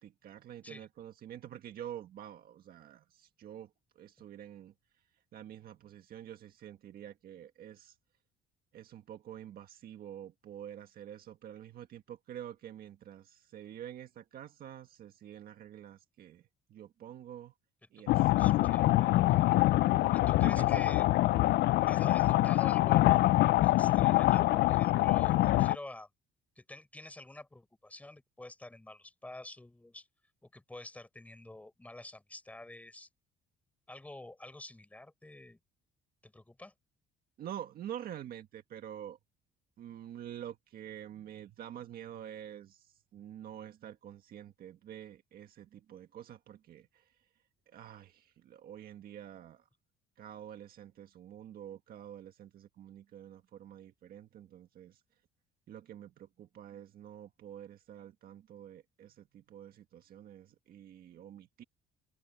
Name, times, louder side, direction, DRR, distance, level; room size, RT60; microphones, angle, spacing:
voice 1, 0.0-4.7 5.3-7.9 8.7-16.4 16.7-17.5 17.9-18.5 19.0-19.3 20.3-21.0 37.4-39.2 39.8-47.1 47.7-49.6 50.2-55.0 55.7-61.6, right 10 dB, 50° right, 1.7 m, -47 dB
voice 2, 18.0-18.9 19.3-19.5 20.1-21.1 21.9-23.2 23.6-26.1 26.6-30.1 30.4-33.1 33.9-35.6 36.2-36.7, left 2 dB, 5° left, 5.1 m, -48 dB
sound 1, 18.1-25.8, left 17 dB, 55° left, 0.4 m, -25 dB
cardioid pair, 175°, 20 cm